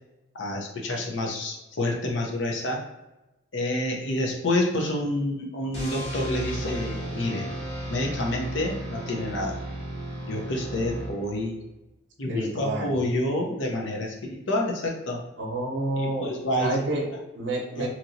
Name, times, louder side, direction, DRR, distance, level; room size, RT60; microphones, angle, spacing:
voice 1, 0.4-2.8 3.5-7.5 7.9-9.6 10.3-11.6 12.2-15.2 16.0-17.0 17.8-17.9, left 1 dB, 75° left, 0 dB, 0.7 m, -28 dB
sound 1, 5.7-11.6, right 1 dB, 35° left, 0.8 m, -34 dB
voice 2, 12.2-12.9 15.4-16.3 16.6-17.9, right 2 dB, 70° right, 1 dB, 0.7 m, -29 dB
2.9 x 2.8 x 2.6 m, 0.98 s
head